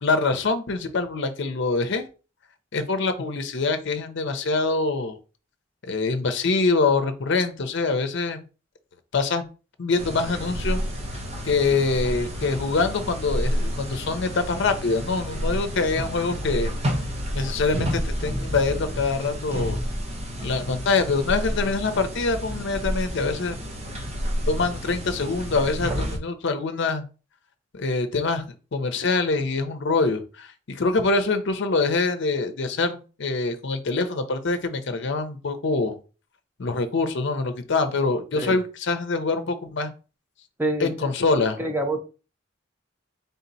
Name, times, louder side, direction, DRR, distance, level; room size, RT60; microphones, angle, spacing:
voice 1, 0.0-2.1 2.7-5.2 5.8-8.4 9.1-9.4 9.8-10.8 11.4-16.7 17.3-19.8 20.4-23.6 24.5-27.0 27.7-28.4 28.7-36.0 36.6-39.9 40.8-41.6, left 3 dB, 65° left, 8 dB, 0.6 m, -24 dB
sound 1, 10.0-26.2, equal, 35° right, 0.9 m, -30 dB
voice 2, 40.6-41.1 41.6-42.0, right 1 dB, 10° right, 3 dB, 0.8 m, -26 dB
3.7 x 2.8 x 4.0 m, 0.34 s
head